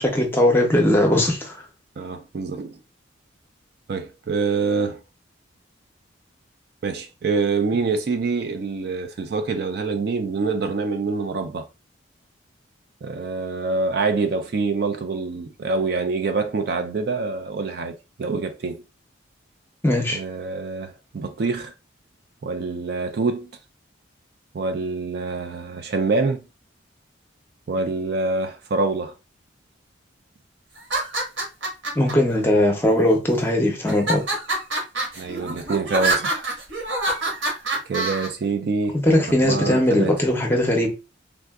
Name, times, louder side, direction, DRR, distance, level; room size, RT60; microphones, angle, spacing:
voice 1, 0.0-1.6 19.8-20.2 31.9-34.2 39.0-40.9, left 1 dB, 10° left, 0.6 m, -19 dB
voice 2, 2.0-2.8 3.9-5.0 6.8-11.7 13.0-18.8 20.1-21.7 22.4-23.5 24.5-26.4 27.7-29.1 35.2-36.5 37.9-39.0 39.4-40.1, right 4 dB, 50° right, 0.3 m, -25 dB
sound 1, 30.8-32.1 32.9-33.4 33.9-38.3, right 2 dB, 75° right, 1.4 m, -26 dB
3.5 x 2.4 x 2.3 m
head